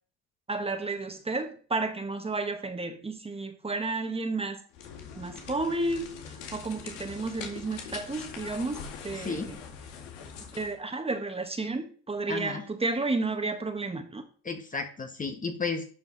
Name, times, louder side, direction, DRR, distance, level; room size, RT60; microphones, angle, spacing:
voice 1, 0.5-4.6 5.1-6.1 6.5-9.6 10.5-14.2, right 3 dB, 15° right, 1.5 m, -32 dB
sound 1, 4.7-10.8, left 6 dB, 80° left, 2.2 m, -43 dB
voice 2, 9.1-9.5 12.3-12.6 14.4-15.8, left 4 dB, 20° left, 1.3 m, -33 dB
11.5 x 5.3 x 4.1 m
supercardioid pair, 90°, 35 cm